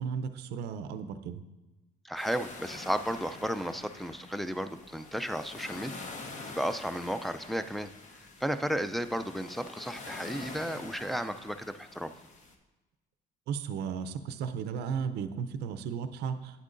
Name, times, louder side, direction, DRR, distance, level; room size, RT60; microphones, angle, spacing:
voice 1, 0.0-1.4 13.5-16.6, right 7 dB, 80° right, 10 dB, 0.5 m, -35 dB
voice 2, 2.0-6.0 6.5-7.9 8.4-12.1, equal, ahead, 8 dB, 0.4 m, -33 dB
sound 1, 2.2-12.5, left 3 dB, 45° left, 1.0 m, -46 dB
9.1 x 8.1 x 2.5 m, 1.1 s
cardioid pair, 110°, 17 cm